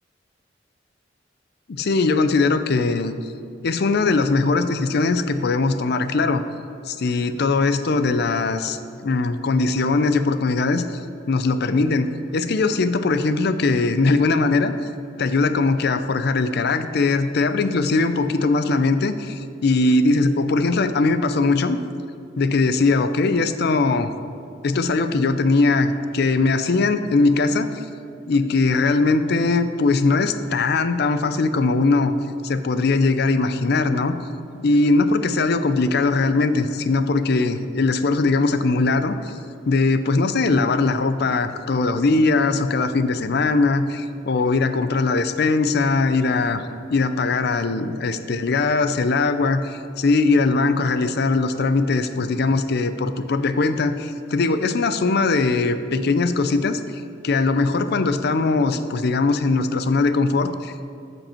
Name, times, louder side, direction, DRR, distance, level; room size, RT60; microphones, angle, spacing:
voice 1, 1.7-3.1 3.6-6.4 6.9-11.0 11.3-12.1 12.3-14.7 15.2-21.8 22.4-24.1 24.6-27.7 28.3-32.1 32.4-34.2 34.5-39.3 39.7-56.8 57.2-60.9, left 3 dB, 60° left, 10 dB, 0.5 m, -20 dB
13.0 x 5.4 x 4.4 m, 2.3 s
head